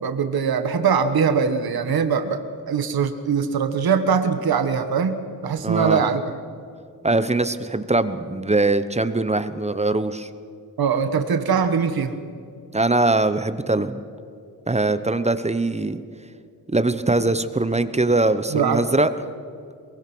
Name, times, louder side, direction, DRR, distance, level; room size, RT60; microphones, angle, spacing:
voice 1, 0.0-6.3 10.8-12.2 18.5-18.8, right 6 dB, 75° right, 8 dB, 1.5 m, -22 dB
voice 2, 5.6-6.1 7.0-10.3 12.7-14.0 14.7-16.0 16.7-19.1, right 2 dB, 20° right, 12 dB, 1.0 m, -21 dB
23.0 x 22.5 x 6.2 m, 2.3 s
wide cardioid pair, 100°, 37 cm